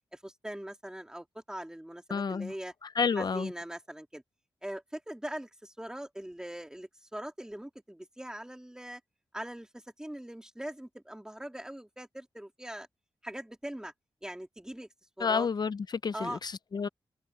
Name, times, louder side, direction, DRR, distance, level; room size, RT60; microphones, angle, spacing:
voice 1, 0.1-2.7 3.1-4.2 4.6-9.0 9.3-12.9 13.2-13.9 14.2-14.9 15.2-15.5 16.1-16.4, right 1 dB, 5° right, 2.8 m, -41 dB
voice 2, 2.1-2.5 3.0-3.5 15.2-16.9, left 5 dB, 45° left, 0.5 m, -30 dB
wide cardioid pair, 135°, 9 cm